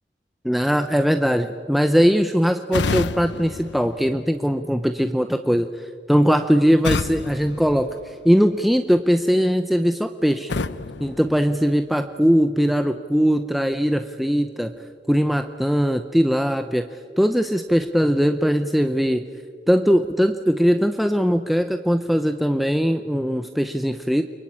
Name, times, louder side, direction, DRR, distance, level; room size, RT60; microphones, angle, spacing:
voice 1, 0.4-10.5 11.0-14.7 15.1-16.9 17.2-19.3 19.7-24.2, equal, ahead, 7 dB, 0.7 m, -20 dB
sound 1, 2.7-4.7 6.8-8.6 10.5-12.1, left 3 dB, 85° left, 0.8 m, -30 dB
30.0 x 23.0 x 8.7 m, 2.1 s
head